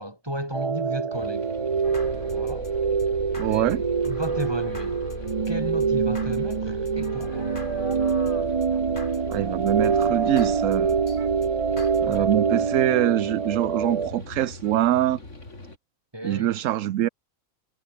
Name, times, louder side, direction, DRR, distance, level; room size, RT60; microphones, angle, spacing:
voice 1, 0.0-1.5 2.3-2.7 3.4-5.0 5.5-7.5 12.1-12.3 16.1-16.5, right 1 dB, 20° right, 4.9 m, -34 dB
sound 1, 0.5-14.1, right 6 dB, 35° right, 0.6 m, -25 dB
sound 2, 1.1-15.8, left 2 dB, 65° left, 5.0 m, -41 dB
sound 3, 1.8-12.4, left 1 dB, 40° left, 6.7 m, -40 dB
voice 2, 3.4-3.8 9.3-11.3 12.0-15.2 16.2-17.1, right 13 dB, 75° right, 1.0 m, -24 dB
omnidirectional pair, 1.4 m